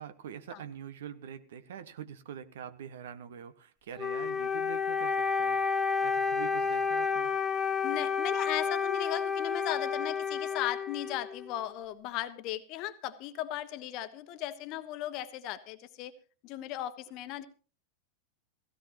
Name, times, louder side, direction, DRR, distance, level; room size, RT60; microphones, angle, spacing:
voice 1, 0.0-7.4, right 8 dB, 60° right, 12 dB, 1.2 m, -45 dB
Wind instrument woodwind instrument, 4.0-11.5, left 5 dB, 10° left, 1.4 m, -30 dB
voice 2, 7.8-16.1 16.4-17.5, left 13 dB, 40° left, 12 dB, 1.2 m, -37 dB
17.0 x 16.5 x 2.9 m, 0.38 s
figure-of-eight pair, 90°, 0 cm